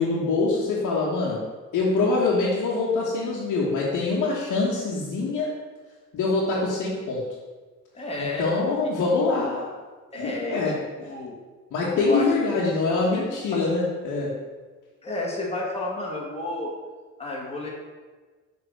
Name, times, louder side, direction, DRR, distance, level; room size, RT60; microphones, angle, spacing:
voice 1, 0.0-1.4 1.7-5.5 6.1-7.3 8.2-9.7 10.2-10.8 11.7-14.4, left 3 dB, 75° left, -6 dB, 1.4 m, -24 dB
voice 2, 7.9-8.5 10.1-11.4 12.0-12.6 12.9-13.2 13.5-13.6 15.0-16.7 17.2-17.7, left 2 dB, 20° left, -3 dB, 1.7 m, -31 dB
6.4 x 3.9 x 6.2 m, 1.4 s
cardioid pair, 90°, 30 cm